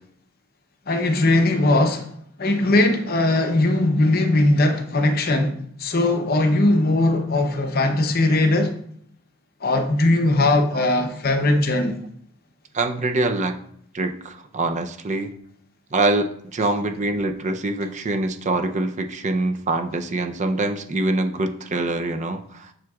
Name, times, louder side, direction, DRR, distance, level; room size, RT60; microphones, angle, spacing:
voice 1, 0.9-2.1 2.4-8.7 9.6-12.0, left 2 dB, 45° left, 0.7 m, -19 dB
voice 2, 12.7-13.5 13.9-15.3 15.9-16.3 16.5-22.7, right 2 dB, 35° right, 0.5 m, -24 dB
7.5 x 6.3 x 2.4 m
head